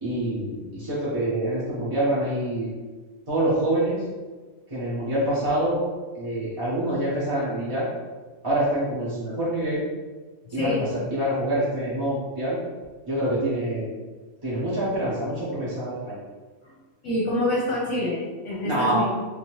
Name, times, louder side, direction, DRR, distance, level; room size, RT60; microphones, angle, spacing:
voice 1, 0.0-2.7 3.3-4.0 4.7-5.8 6.1-7.9 8.4-9.8 10.5-12.6 13.1-13.9 14.4-16.1 18.6-19.0, right 1 dB, 25° right, -10 dB, 0.8 m, -26 dB
voice 2, 10.5-10.8 17.0-19.0, left 1 dB, 65° left, -4 dB, 1.0 m, -26 dB
3.5 x 2.7 x 3.0 m, 1.3 s
omnidirectional pair, 1.5 m